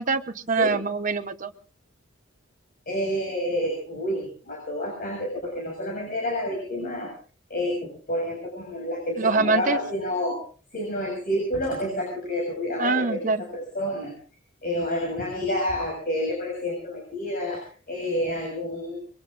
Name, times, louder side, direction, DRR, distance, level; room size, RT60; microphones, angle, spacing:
voice 1, 0.0-1.5 9.2-9.8 12.8-13.4, right 4 dB, 40° right, 8 dB, 0.9 m, -24 dB
voice 2, 2.9-7.1 7.5-10.4 10.7-14.1 14.6-19.0, left 1 dB, 45° left, 0 dB, 6.9 m, -29 dB
25.5 x 22.5 x 2.5 m, 0.38 s
head